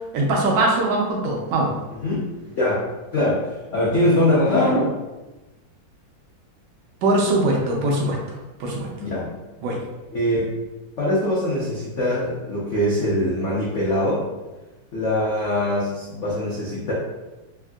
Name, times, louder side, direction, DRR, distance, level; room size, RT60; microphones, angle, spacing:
voice 1, 0.1-1.7 7.0-8.2 8.6-8.9 9.6-9.8, right 2 dB, 75° right, -1 dB, 1.2 m, -21 dB
voice 2, 1.9-2.3 2.5-5.0 9.0-9.3 10.1-10.5 11.0-14.3 14.9-16.9, left 1 dB, 75° left, -7 dB, 0.6 m, -22 dB
3.5 x 2.4 x 2.3 m, 1.1 s
omnidirectional pair, 2.1 m